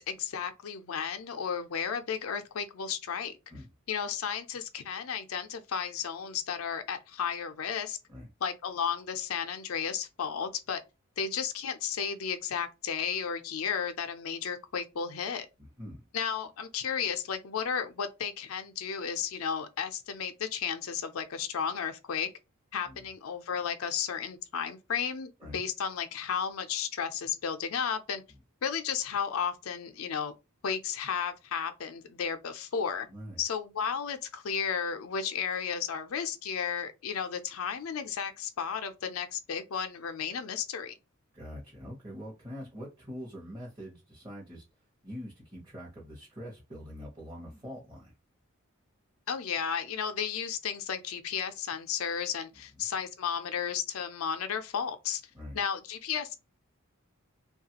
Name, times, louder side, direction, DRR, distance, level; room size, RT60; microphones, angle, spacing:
voice 1, 0.0-3.3 3.9-8.0 8.4-10.8 11.2-15.5 16.1-22.3 22.7-28.2 28.6-30.3 30.6-33.1 33.4-40.9 49.3-55.2 55.5-56.3, left 7 dB, 90° left, 0.5 m, -33 dB
voice 2, 15.6-16.0 22.8-23.1 25.4-25.6 33.1-33.4 41.3-44.6 45.0-48.1 52.7-52.8 55.3-55.6, equal, 20° right, 0.8 m, -44 dB
3.1 x 2.3 x 2.8 m
head